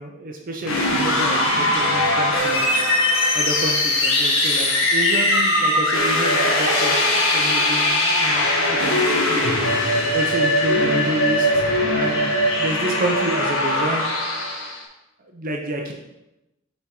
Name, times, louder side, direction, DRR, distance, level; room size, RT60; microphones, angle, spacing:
voice 1, 0.0-9.6 10.1-14.0 15.2-16.0, right 1 dB, 45° right, 1 dB, 0.7 m, -29 dB
sound 1, 0.6-14.8, left 1 dB, 80° left, 1.3 m, -20 dB
6.8 x 4.2 x 4.9 m, 0.95 s
head